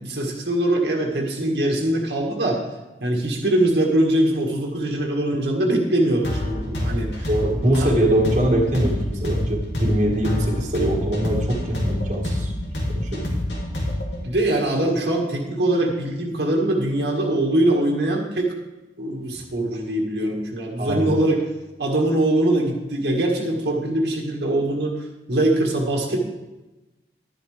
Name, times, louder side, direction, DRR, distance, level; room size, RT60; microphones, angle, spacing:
voice 1, 0.0-2.7 3.0-7.3 7.7-7.9 14.2-18.6 19.0-21.5 21.8-26.2, right 1 dB, 75° right, -1 dB, 1.8 m, -22 dB
sound 1, 6.2-14.2, left 1 dB, 80° left, 2.3 m, -26 dB
voice 2, 7.3-12.5 12.9-13.2 20.8-21.1, right 1 dB, 45° right, -1 dB, 1.8 m, -22 dB
12.0 x 10.5 x 3.4 m, 1.0 s
head